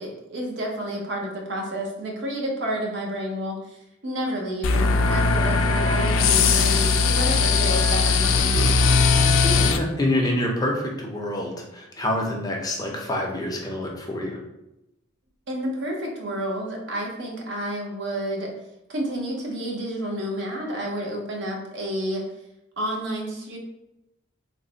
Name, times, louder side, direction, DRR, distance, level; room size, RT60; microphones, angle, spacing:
voice 1, 0.0-8.8 15.5-18.5 18.9-22.2 22.8-23.6, equal, 65° right, 0 dB, 0.8 m, -30 dB
sound 1, 4.6-9.8, left 4 dB, 85° left, 0.3 m, -19 dB
voice 2, 9.1-14.4, left 1 dB, 20° left, 0 dB, 0.5 m, -27 dB
3.2 x 2.1 x 3.8 m, 0.90 s
head